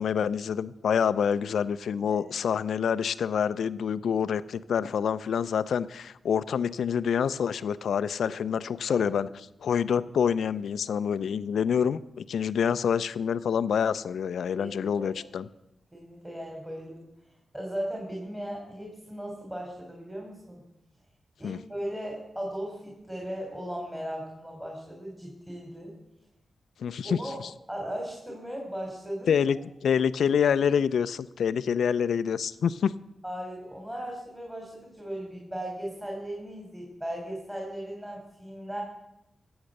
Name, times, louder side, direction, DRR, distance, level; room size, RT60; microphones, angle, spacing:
voice 1, 0.0-9.3 9.6-15.5 21.4-21.6 26.8-27.2 29.3-33.0, left 7 dB, 85° left, 15 dB, 0.5 m, -27 dB
voice 2, 14.6-15.2 15.9-17.1 17.5-20.6 21.4-25.9 27.0-27.4 27.7-29.3 33.2-38.8, equal, 15° right, -1 dB, 3.7 m, -37 dB
14.5 x 8.0 x 6.5 m, 0.87 s
cardioid pair, 60°, 0 cm